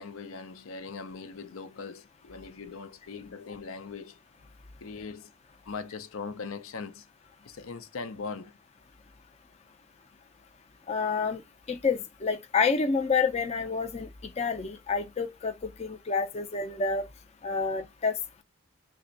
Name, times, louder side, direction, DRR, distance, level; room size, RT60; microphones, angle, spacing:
voice 1, 0.0-4.2 4.8-5.3 5.6-7.1 7.4-8.6, left 4 dB, 85° left, 0.6 m, -40 dB
voice 2, 10.9-11.4 11.7-14.1 14.4-15.5 15.8-17.0 17.4-18.1, left 5 dB, 30° left, 0.4 m, -28 dB
3.4 x 2.1 x 3.8 m
head